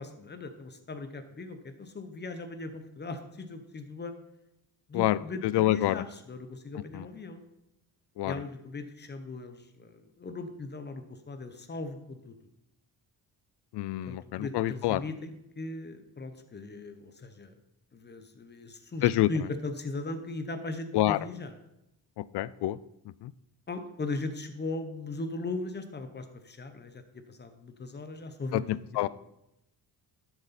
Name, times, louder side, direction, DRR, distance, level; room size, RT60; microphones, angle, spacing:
voice 1, 0.0-4.1 4.9-7.4 8.2-12.3 14.0-17.6 17.9-21.6 23.7-29.1, left 3 dB, 25° left, 8 dB, 0.9 m, -38 dB
voice 2, 5.5-6.0 6.9-7.0 8.2-8.3 13.7-15.0 19.0-19.3 20.9-21.2 22.2-22.8 23.2-23.3 28.5-28.6 29.0-29.1, left 15 dB, 75° left, 18 dB, 0.5 m, -26 dB
11.5 x 7.0 x 4.2 m, 0.86 s
cardioid pair, 145°, 41 cm